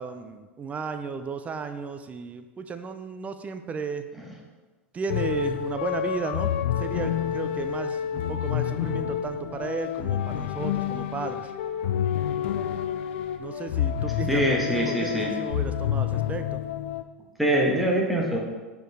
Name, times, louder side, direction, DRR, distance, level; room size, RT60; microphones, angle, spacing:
voice 1, 0.0-4.0 4.9-6.5 6.8-11.5 13.4-16.6, right 5 dB, 20° right, 9 dB, 0.4 m, -34 dB
sound 1, 5.1-17.0, left 10 dB, 65° left, 0.4 m, -28 dB
voice 2, 14.3-15.5 17.4-18.4, equal, ahead, -2 dB, 1.3 m, -24 dB
6.2 x 4.6 x 3.5 m, 1.2 s
hypercardioid pair, 90°, 7 cm